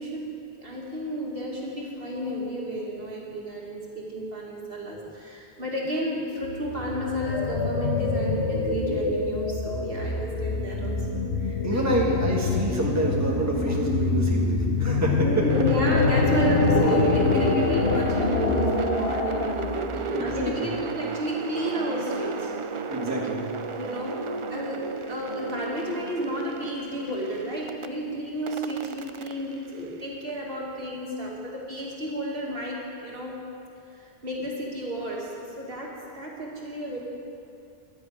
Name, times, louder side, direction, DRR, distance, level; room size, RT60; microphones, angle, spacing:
voice 1, 0.0-12.0 15.2-22.5 23.8-24.2 24.5-33.4 33.9-37.0, right 1 dB, 60° right, -3 dB, 2.5 m, -32 dB
sound 1, 6.4-20.6, left 4 dB, 85° left, 1.3 m, -25 dB
voice 2, 11.6-15.5 20.1-20.8 22.9-23.4, right 1 dB, 15° right, -2 dB, 1.6 m, -27 dB
sound 2, 15.5-27.9 28.5-30.6, right 4 dB, 45° right, 0.4 m, -34 dB
12.0 x 10.0 x 8.5 m, 2.6 s
omnidirectional pair, 1.1 m